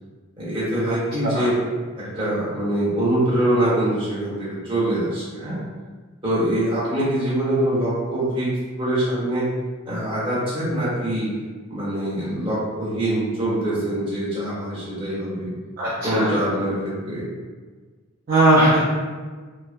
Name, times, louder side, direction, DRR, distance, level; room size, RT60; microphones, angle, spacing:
voice 1, 0.4-1.6 1.9-5.6 6.2-8.5 8.8-9.5 9.8-11.3 11.7-15.5 16.0-17.3, right 1 dB, 25° right, -10 dB, 1.2 m, -24 dB
voice 2, 15.8-16.3 18.3-18.8, right 1 dB, 45° right, -8 dB, 0.5 m, -18 dB
3.2 x 2.1 x 2.5 m, 1.4 s
head